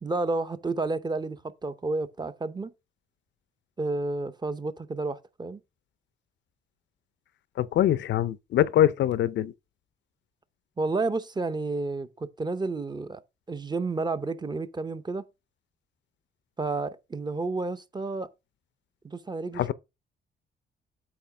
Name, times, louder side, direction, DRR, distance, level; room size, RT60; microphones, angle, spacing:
voice 1, 0.0-2.7 3.8-5.6 10.8-13.2 13.5-15.2 16.6-18.3 19.0-19.7, right 3 dB, 20° right, 0.7 m, -31 dB
voice 2, 7.6-9.5 19.6-19.7, left 11 dB, 65° left, 0.5 m, -23 dB
8.6 x 2.9 x 5.8 m
cardioid pair, 90°, 20 cm